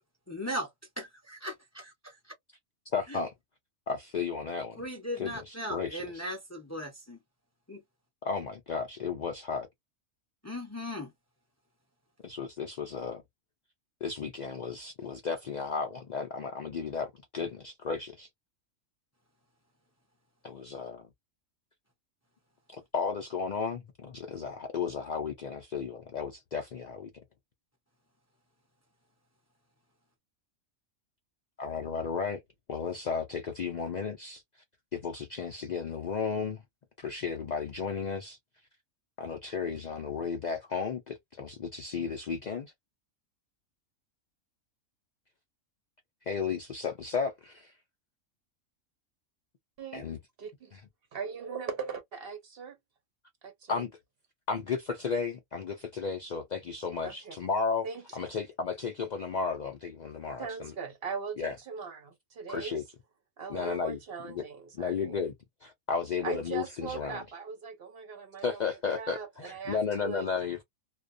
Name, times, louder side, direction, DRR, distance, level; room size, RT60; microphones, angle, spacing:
voice 1, 0.3-0.7 1.0-2.1 3.1-3.2 4.8-7.2 7.7-7.8 10.4-11.1, equal, 20° left, 0.4 m, -38 dB
voice 2, 2.9-3.3 3.9-4.8 5.2-6.2 8.2-9.7 12.2-13.2 14.0-18.3 20.4-21.1 22.7-27.1 31.6-32.4 32.7-34.6 34.9-36.6 37.0-38.4 39.2-42.7 46.3-47.7 49.9-50.2 50.7-50.8 53.7-53.9 54.5-57.9 58.1-60.7 61.4-61.6 62.5-62.8 63.5-64.0 64.3-64.4 64.8-65.3 65.6-67.2 68.4-70.6, left 5 dB, 85° left, 0.3 m, -34 dB
voice 3, 50.4-50.7 51.1-52.8 53.4-53.8 57.0-57.4 57.8-58.0 60.4-62.8 63.4-65.2 66.2-68.6 68.9-70.3, right 6 dB, 55° right, 0.7 m, -39 dB
2.3 x 2.2 x 2.5 m
omnidirectional pair, 1.4 m